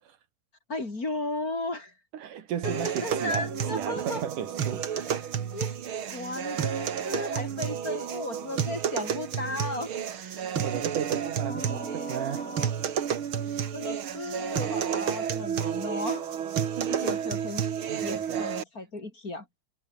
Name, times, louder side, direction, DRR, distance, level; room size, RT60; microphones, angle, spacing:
voice 1, 0.7-1.9 2.6-4.2 4.9-5.1 5.5-5.8 6.1-9.9 11.4-12.7 13.7-16.2 17.0-17.6 18.0-19.5, left 2 dB, 25° left, 3.9 m, -35 dB
voice 2, 2.1-5.4 6.4-6.7 10.6-12.5 16.8-17.2 17.9-18.5, right 9 dB, 80° right, 3.6 m, -35 dB
sound 1, 2.6-18.6, right 8 dB, 45° right, 2.1 m, -31 dB
omnidirectional pair, 3.6 m